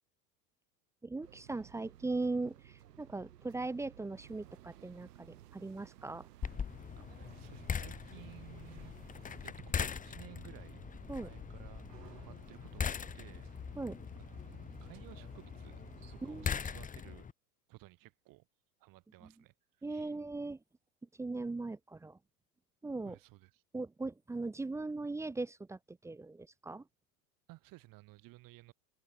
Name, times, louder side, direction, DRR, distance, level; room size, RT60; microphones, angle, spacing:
voice 1, 1.0-6.3 11.1-11.3 13.8-14.0 16.2-16.6 19.2-19.3 19.8-20.6 21.2-22.2 22.8-23.2 23.7-26.8, right 3 dB, 5° right, 0.6 m, -39 dB
sound 1, 1.2-16.9, right 11 dB, 90° right, 3.8 m, -58 dB
sound 2, 4.1-9.5, right 19 dB, 65° right, 7.4 m, -62 dB
sound 3, 6.4-17.3, left 7 dB, 15° left, 1.5 m, -41 dB
voice 2, 7.0-9.0 9.3-10.8 11.2-13.5 14.2-15.8 16.1-17.3 17.7-18.5 18.8-20.2 23.0-23.6 27.5-28.7, right 20 dB, 45° right, 4.2 m, -56 dB
open air
hypercardioid pair, 120°, 47 cm